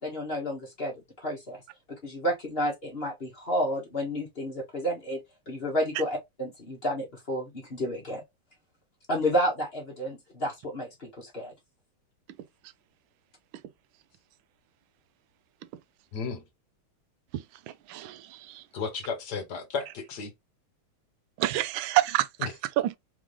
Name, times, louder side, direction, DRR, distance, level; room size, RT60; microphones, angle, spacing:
voice 1, 0.0-1.6 1.9-5.2 5.5-8.2 9.1-11.5, equal, 30° left, 1.4 m, -31 dB
voice 2, 16.1-16.4 18.7-20.3 22.4-22.5, left 5 dB, 55° left, 1.6 m, -33 dB
voice 3, 17.9-18.6 21.4-22.5 22.8-23.0, right 15 dB, 75° right, 1.3 m, -27 dB
3.8 x 3.6 x 3.2 m
omnidirectional pair, 2.3 m